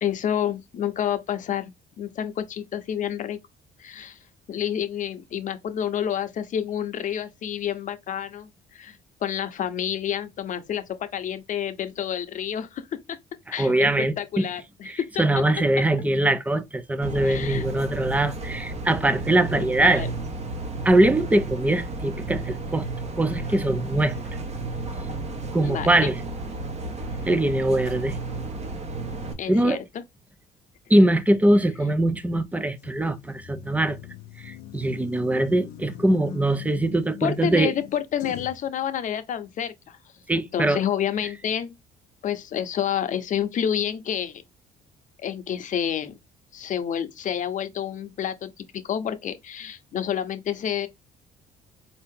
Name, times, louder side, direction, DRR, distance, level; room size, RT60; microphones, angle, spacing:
voice 1, 0.0-1.7 2.0-3.4 3.8-4.2 4.5-12.8 13.5-15.1 17.2-17.7 19.5-20.1 25.6-26.1 29.4-29.8 37.2-40.0 40.3-41.7 42.2-44.4 45.2-46.1 46.5-50.9, left 9 dB, 50° left, 0.7 m, -29 dB
voice 2, 13.6-14.5 14.8-20.1 20.8-22.9 23.2-24.2 25.5-26.2 27.3-28.2 29.5-29.8 30.9-34.0 34.4-37.7 40.3-40.8, right 1 dB, 10° right, 0.5 m, -22 dB
sound 1, 17.0-29.3, right 2 dB, 40° right, 1.1 m, -33 dB
sound 2, 32.8-38.7, left 12 dB, 85° left, 0.6 m, -42 dB
4.3 x 2.8 x 3.6 m
cardioid pair, 110°, 17 cm